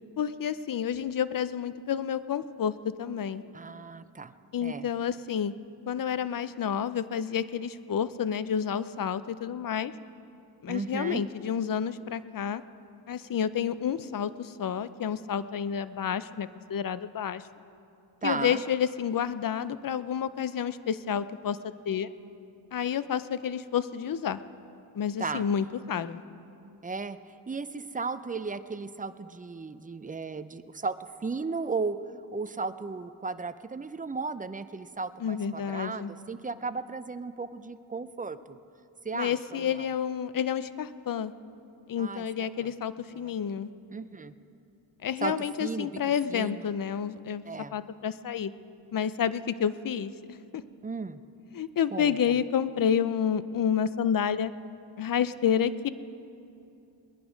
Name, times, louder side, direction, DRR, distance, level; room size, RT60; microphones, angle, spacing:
voice 1, 0.2-3.4 4.5-5.5 5.9-9.9 10.6-12.6 13.1-17.4 18.2-21.6 21.8-22.1 22.7-24.4 24.9-26.2 35.2-36.1 39.1-41.3 41.9-43.7 45.0-47.4 47.7-48.5 48.9-50.6 51.5-54.5 55.0-55.9, left 8 dB, 45° left, 14 dB, 0.6 m, -29 dB
voice 2, 3.5-4.3 4.6-4.9 10.7-11.2 18.2-18.6 25.2-25.5 26.8-27.2 27.5-32.0 32.3-38.6 39.0-39.9 42.0-42.7 43.1-43.3 43.9-44.3 45.2-45.3 45.6-45.9 46.3-46.7 47.5-47.7 50.8-51.2 51.9-52.3, right 4 dB, 20° right, 13 dB, 0.5 m, -35 dB
20.5 x 10.5 x 5.1 m, 2.7 s
cardioid pair, 75°, 48 cm